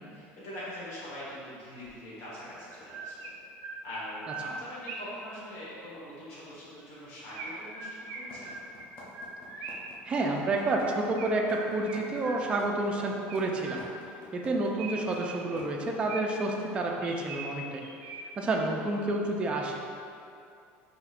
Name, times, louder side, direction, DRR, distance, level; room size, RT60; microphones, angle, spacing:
voice 1, 0.0-3.1 3.8-8.5, equal, 60° left, -10 dB, 1.2 m, -43 dB
Chirp tweet, 1.8-1.9 2.6-5.3 7.3-10.0 11.2-12.8 13.3-14.2 14.8-16.5 17.0-18.5, right 3 dB, 80° right, 0.5 m, -42 dB
sound 1, 8.3-16.0, left 2 dB, 35° left, 0.8 m, -49 dB
voice 2, 10.0-13.8 14.3-17.8 18.4-19.8, right 2 dB, 20° right, 0 dB, 0.3 m, -29 dB
4.9 x 2.8 x 2.4 m, 2.5 s
cardioid pair, 150°, 5 cm